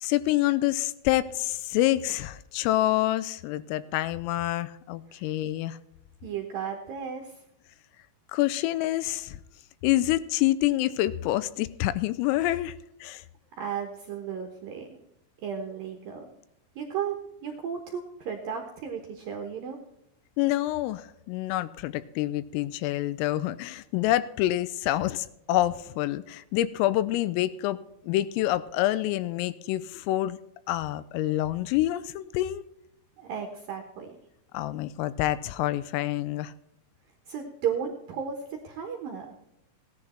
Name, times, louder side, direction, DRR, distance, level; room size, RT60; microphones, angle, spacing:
voice 1, 0.0-5.8 8.3-9.4 9.8-12.8 13.0-13.2 20.4-27.8 28.1-30.4 30.7-32.7 34.5-36.5, left 15 dB, 85° left, 15 dB, 3.4 m, -27 dB
voice 2, 6.2-7.4 13.6-15.0 15.4-16.3 16.8-19.8 33.2-34.2 37.3-39.3, right 7 dB, 70° right, 3 dB, 2.2 m, -34 dB
17.0 x 10.5 x 4.4 m, 0.82 s
omnidirectional pair, 5.9 m